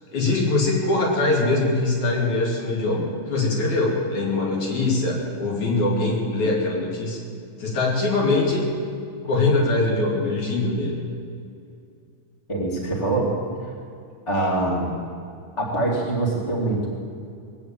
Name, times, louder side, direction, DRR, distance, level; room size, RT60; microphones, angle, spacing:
voice 1, 0.1-7.2 7.6-8.7 9.2-11.0, left 2 dB, 60° left, -2 dB, 4.0 m, -22 dB
voice 2, 12.5-13.3 14.3-14.9 15.6-16.9, right 2 dB, 10° left, -2 dB, 2.0 m, -24 dB
19.5 x 8.2 x 8.8 m, 2.4 s
omnidirectional pair, 3.9 m